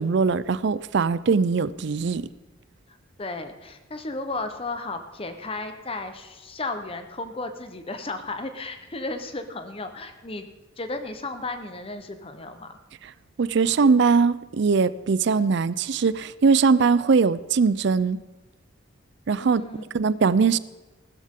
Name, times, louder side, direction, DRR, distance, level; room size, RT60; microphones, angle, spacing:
voice 1, 0.0-2.3 13.0-13.1 13.4-18.2 19.3-19.6 19.9-20.6, right 5 dB, 55° right, 17 dB, 0.4 m, -21 dB
voice 2, 3.2-10.5 10.8-12.7 19.4-20.1, left 2 dB, 30° left, 8 dB, 0.9 m, -34 dB
16.0 x 13.0 x 3.7 m, 1.2 s
head